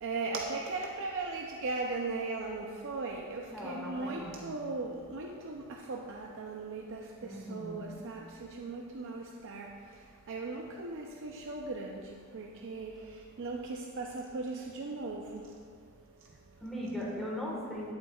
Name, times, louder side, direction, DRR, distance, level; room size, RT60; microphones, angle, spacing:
voice 1, 0.0-5.6 5.9-8.2 8.6-9.7 10.3-12.0 12.3-12.9 13.4-15.4, right 3 dB, 60° right, 0 dB, 0.5 m, -38 dB
voice 2, 3.5-4.6 7.2-7.9 16.2-17.9, equal, ahead, -5 dB, 1.4 m, -39 dB
12.5 x 7.7 x 2.3 m, 2.2 s
head